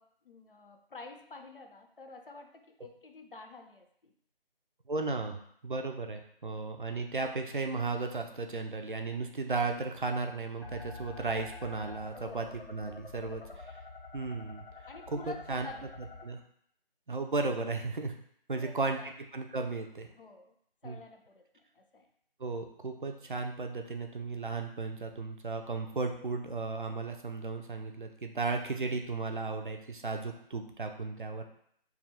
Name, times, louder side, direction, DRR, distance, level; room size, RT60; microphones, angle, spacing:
voice 1, 0.0-4.1 12.2-12.6 13.4-13.7 14.9-15.9 18.5-19.1 20.1-20.5 20.8-22.1, left 3 dB, 65° left, 5 dB, 0.5 m, -49 dB
voice 2, 4.9-13.8 14.1-14.6 15.1-15.7 16.2-16.4 17.1-18.2 18.5-19.0 19.3-20.1 20.8-21.0 22.4-31.4, right 3 dB, 55° right, 4 dB, 0.4 m, -35 dB
sound 1, 10.6-16.2, left 3 dB, 85° left, 0.8 m, -47 dB
2.7 x 2.1 x 3.8 m, 0.66 s
figure-of-eight pair, 165°, 30 cm